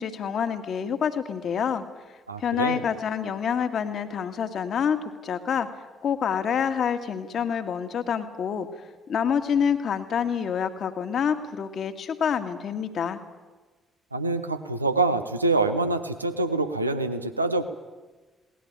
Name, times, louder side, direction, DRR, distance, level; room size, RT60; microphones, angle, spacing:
voice 1, 0.0-1.8 2.4-5.7 6.0-8.7 9.1-13.2, left 7 dB, 55° left, 9 dB, 1.9 m, -27 dB
voice 2, 2.3-2.8 14.1-17.6, right 3 dB, 90° right, 9 dB, 1.0 m, -25 dB
20.5 x 19.0 x 8.8 m, 1.2 s
figure-of-eight pair, 40°, 0 cm